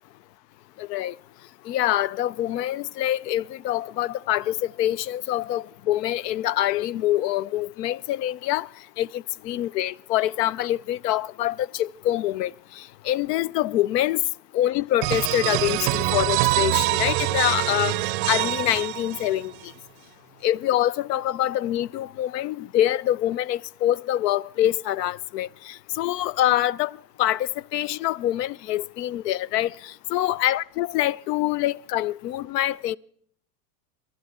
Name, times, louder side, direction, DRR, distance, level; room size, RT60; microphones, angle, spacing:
voice 1, 0.8-1.2 1.7-8.7 9.0-14.2 14.5-19.7 20.4-33.0, left 13 dB, 80° left, 0.5 m, -25 dB
sound 1, 15.0-19.6, right 18 dB, 40° right, 0.5 m, -24 dB
27.0 x 11.5 x 3.6 m
supercardioid pair, 140°, 48 cm